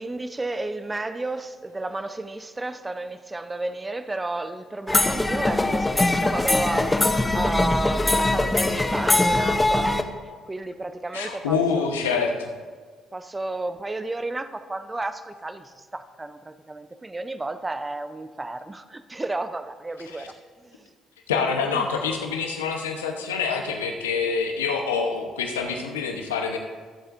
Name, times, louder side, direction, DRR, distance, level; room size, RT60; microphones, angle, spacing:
voice 1, 0.0-10.1 10.5-11.9 13.1-20.3 20.6-20.9 21.7-21.9, right 2 dB, 20° right, 10 dB, 0.8 m, -32 dB
sound 1, 4.9-10.0, left 2 dB, 20° left, 0.9 m, -22 dB
voice 2, 11.1-12.5 21.3-26.6, left 5 dB, 90° left, 3 dB, 0.9 m, -26 dB
22.0 x 7.9 x 2.6 m, 1.5 s
hypercardioid pair, 50°, 0 cm